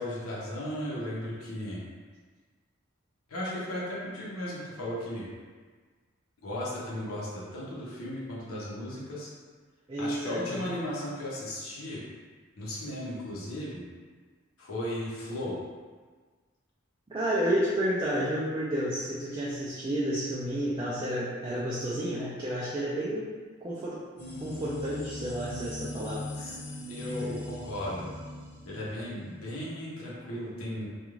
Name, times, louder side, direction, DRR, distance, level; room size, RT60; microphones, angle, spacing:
voice 1, 0.0-1.8 3.3-5.3 6.4-9.3 10.0-12.0 12.6-13.9 14.6-15.6 26.3-26.6 26.9-28.1 28.6-30.9, left 1 dB, 80° left, -6 dB, 0.7 m, -36 dB
voice 2, 9.9-10.6 17.1-23.3 23.6-24.0 24.4-26.2 27.2-27.3, equal, 20° right, -7 dB, 0.3 m, -31 dB
sound 1, 24.2-29.4, left 1 dB, 30° left, 0.9 m, -40 dB
2.4 x 2.3 x 3.1 m, 1.5 s
head